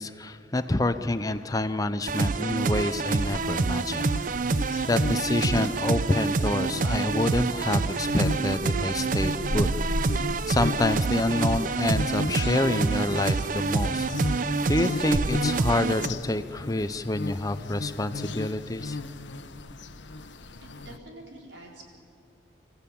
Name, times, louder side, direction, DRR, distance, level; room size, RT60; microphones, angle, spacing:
voice 1, 0.0-4.1 4.9-9.7 10.2-14.1 14.7-19.0, left 2 dB, 20° left, 11 dB, 0.5 m, -27 dB
sound 1, 2.1-16.1, right 4 dB, 45° right, 0.4 m, -27 dB
sound 2, 3.2-21.0, left 2 dB, 75° left, 0.9 m, -35 dB
voice 2, 20.6-21.9, right 1 dB, 75° right, 0 dB, 4.4 m, -46 dB
26.5 x 14.5 x 8.5 m, 2.7 s
head